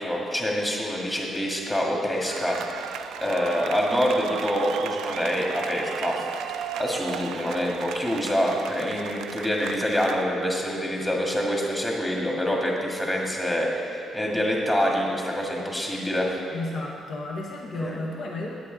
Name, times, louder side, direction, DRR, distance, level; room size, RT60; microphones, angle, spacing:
voice 1, 0.0-2.6 3.2-6.1 6.8-16.3 17.8-18.0, equal, 15° left, -2 dB, 1.8 m, -26 dB
sound 1, 2.3-10.2, right 8 dB, 85° right, 0.3 m, -35 dB
voice 2, 16.5-18.5, left 2 dB, 60° left, -1 dB, 1.0 m, -32 dB
9.4 x 8.3 x 3.9 m, 2.6 s
cardioid pair, 90°, 0 cm